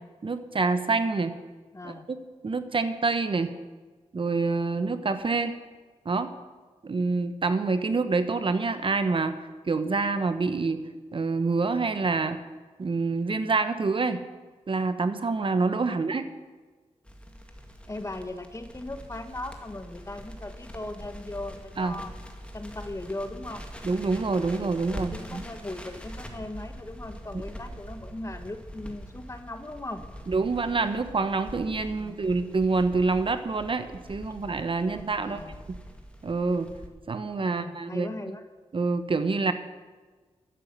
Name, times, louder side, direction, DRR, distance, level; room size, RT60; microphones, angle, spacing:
voice 1, 0.2-1.3 1.8-2.2 2.4-3.5 4.1-5.5 6.0-6.3 6.8-9.3 9.7-10.8 11.1-12.4 12.8-14.2 14.7-16.2 21.8-22.0 23.8-25.4 30.3-35.4 35.7-35.8 36.2-36.7 37.1-38.1 38.7-39.5, right 4 dB, 50° right, 10 dB, 0.9 m, -26 dB
voice 2, 1.7-2.1 15.8-16.0 17.9-22.1 22.5-23.7 25.0-30.0 32.0-32.3 35.2-35.5 37.4-38.5, left 2 dB, 25° left, 8 dB, 1.2 m, -38 dB
Crackle, 17.0-36.9, equal, 10° left, 1.9 m, -43 dB
11.5 x 9.1 x 7.6 m, 1.4 s
cardioid pair, 60°, 12 cm